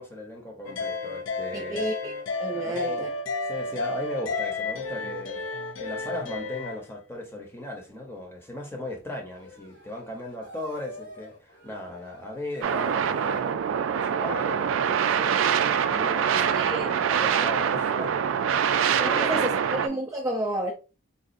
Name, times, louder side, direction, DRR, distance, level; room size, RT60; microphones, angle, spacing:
voice 1, 0.0-1.9 2.5-3.1 3.5-5.5 5.8-13.4 13.9-15.6 15.9-18.2 18.5-19.6, left 1 dB, 10° left, 0.7 m, -37 dB
sound 1, 0.7-6.8, left 3 dB, 85° left, 0.5 m, -32 dB
voice 2, 1.5-2.1 2.4-3.1 16.5-17.4 19.0-20.7, right 1 dB, 15° right, 0.4 m, -31 dB
sound 2, 9.3-15.5, left 1 dB, 65° left, 1.3 m, -47 dB
sound 3, 12.6-19.9, right 8 dB, 90° right, 0.3 m, -24 dB
3.9 x 2.4 x 2.5 m
head